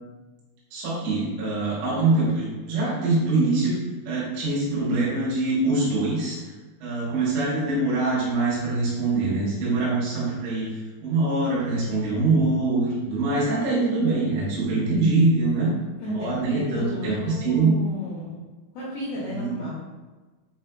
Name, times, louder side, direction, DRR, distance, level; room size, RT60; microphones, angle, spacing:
voice 1, 0.7-3.8 4.1-6.4 6.8-15.7 16.1-17.7 19.2-19.5, right 3 dB, 75° right, -8 dB, 3.3 m, -24 dB
voice 2, 16.0-18.4 18.8-19.7, left 2 dB, 85° left, -8 dB, 2.1 m, -33 dB
7.1 x 2.5 x 2.3 m, 1.3 s
omnidirectional pair, 5.5 m